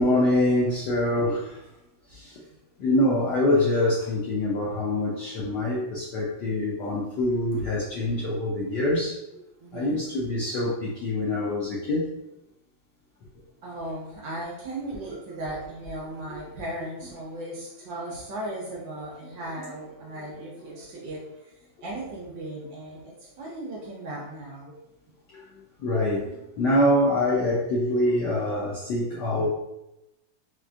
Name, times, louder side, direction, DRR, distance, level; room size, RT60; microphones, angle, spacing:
voice 1, 0.0-1.6 2.1-2.3 2.8-9.2 9.7-12.1 19.4-19.5 25.3-29.5, left 1 dB, 75° left, -5 dB, 0.9 m, -25 dB
voice 2, 9.6-10.0 13.6-21.5 21.8-24.7 29.4-29.5, right 1 dB, 70° right, -4 dB, 1.2 m, -37 dB
4.3 x 2.3 x 2.4 m, 0.92 s
omnidirectional pair, 2.4 m